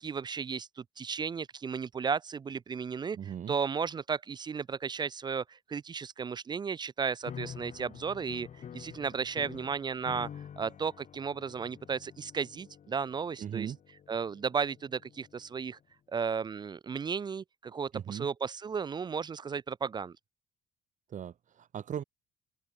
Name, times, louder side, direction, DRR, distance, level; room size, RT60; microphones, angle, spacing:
voice 1, 0.0-3.2 3.5-8.5 8.7-13.7 14.1-15.8 16.1-20.2, right 6 dB, 25° right, 0.4 m, -34 dB
voice 2, 3.1-3.6 13.4-13.8 17.9-18.3 21.1-22.0, right 9 dB, 45° right, 2.5 m, -38 dB
sound 1, 7.2-15.6, left 8 dB, 45° left, 4.0 m, -48 dB
open air
cardioid pair, 110°, 17 cm